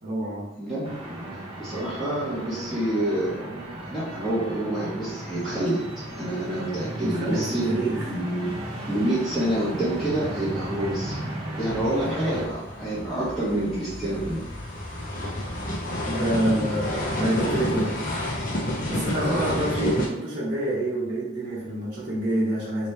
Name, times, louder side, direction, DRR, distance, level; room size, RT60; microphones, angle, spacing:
voice 1, 0.0-0.5 7.0-8.0 16.1-18.0 18.8-22.9, right 1 dB, 45° right, -10 dB, 1.0 m, -27 dB
voice 2, 0.6-5.8 6.2-7.6 8.1-8.5 8.9-11.2 11.6-14.4 19.2-19.9, right 1 dB, ahead, -13 dB, 1.0 m, -28 dB
sound 1, 0.8-12.5, right 1 dB, 30° right, 0.6 m, -35 dB
sound 2, 11.7-20.1, left 1 dB, 45° left, 0.7 m, -30 dB
3.0 x 2.9 x 3.2 m, 0.88 s
head